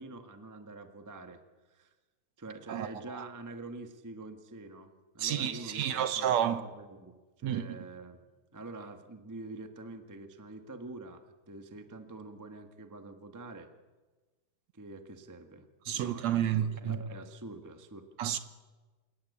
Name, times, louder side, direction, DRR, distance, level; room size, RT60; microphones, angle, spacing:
voice 1, 0.0-1.4 1.7-1.9 2.4-8.2 8.5-13.7 14.7-15.7 15.9-18.1, right 2 dB, 15° right, 0.6 m, -46 dB
voice 2, 5.2-6.6 7.4-7.6 15.9-17.0 18.2-18.4, right 10 dB, 70° right, 2.2 m, -30 dB
28.0 x 18.0 x 8.4 m
omnidirectional pair, 3.4 m